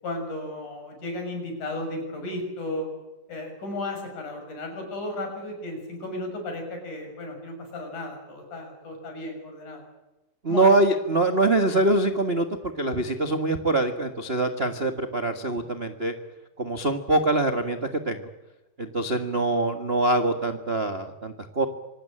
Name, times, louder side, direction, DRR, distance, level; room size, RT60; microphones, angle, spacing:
voice 1, 0.0-2.9 3.3-9.8 10.5-10.7, left 1 dB, 55° left, 4 dB, 8.0 m, -34 dB
voice 2, 10.4-16.1 16.6-18.2 18.8-21.6, right 2 dB, 70° right, 6 dB, 0.5 m, -24 dB
26.0 x 20.0 x 8.8 m, 1.1 s
omnidirectional pair, 4.1 m